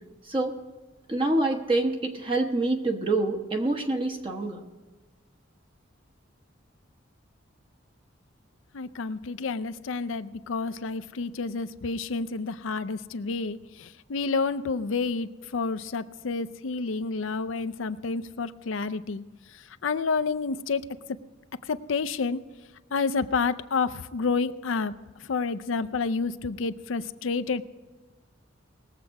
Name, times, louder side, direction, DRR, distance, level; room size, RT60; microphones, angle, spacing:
voice 1, 0.2-0.6 1.1-4.6, right 2 dB, 25° right, 3 dB, 1.0 m, -26 dB
voice 2, 8.7-19.2 19.8-20.8 21.7-22.4 22.9-24.9 25.3-27.6, left 4 dB, 75° left, 10 dB, 0.5 m, -29 dB
20.0 x 7.5 x 4.8 m, 1.3 s
head